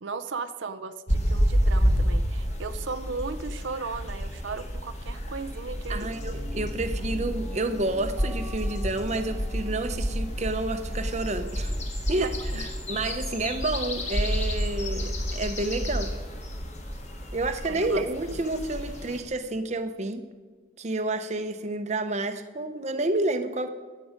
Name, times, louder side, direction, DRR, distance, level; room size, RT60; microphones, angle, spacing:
voice 1, 0.0-6.1 12.2-12.6 17.7-18.1, right 4 dB, 75° right, 9 dB, 0.6 m, -36 dB
sound 1, 1.1-19.2, equal, 35° left, 1.7 m, -30 dB
voice 2, 5.9-11.7 12.1-16.1 17.3-20.2 20.8-23.7, right 2 dB, 35° right, 8 dB, 0.8 m, -29 dB
sound 2, 6.1-11.8, left 2 dB, 70° left, 2.6 m, -46 dB
21.0 x 7.7 x 5.1 m, 1.4 s
head